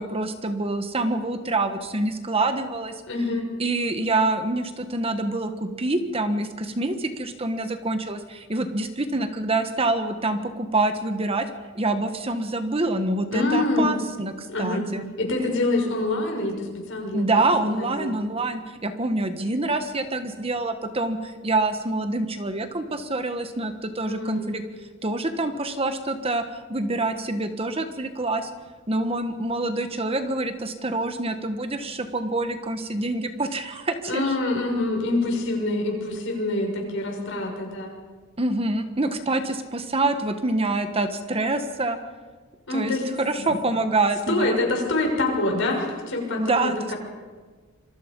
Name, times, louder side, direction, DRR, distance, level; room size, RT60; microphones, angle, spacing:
voice 1, 0.0-2.9 3.6-11.5 11.7-15.0 17.1-24.6 25.0-26.4 26.7-28.5 28.9-34.3 38.4-42.0 42.7-44.6 46.3-46.9, right 2 dB, 30° right, 8 dB, 1.4 m, -26 dB
voice 2, 3.1-3.5 13.3-13.9 14.5-14.9 15.2-17.2 17.6-18.2 24.0-24.5 34.1-38.0 42.7-43.1 43.3-43.6 44.3-47.0, left 2 dB, 60° left, 1 dB, 6.4 m, -26 dB
27.0 x 23.0 x 5.4 m, 1.4 s
head